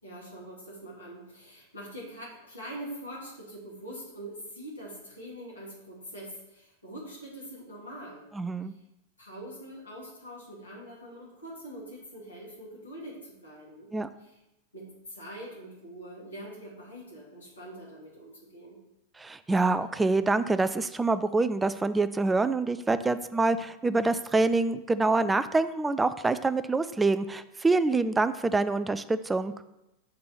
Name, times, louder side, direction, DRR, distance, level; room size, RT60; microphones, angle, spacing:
voice 1, 0.0-8.2 9.2-13.9 14.2-14.4 14.7-18.8, right 1 dB, 75° left, -6 dB, 2.6 m, -44 dB
voice 2, 8.3-8.7 13.9-14.1 19.2-29.5, right 3 dB, 10° right, 12 dB, 0.3 m, -26 dB
6.8 x 3.4 x 5.8 m, 0.91 s
figure-of-eight pair, 90°, 0 cm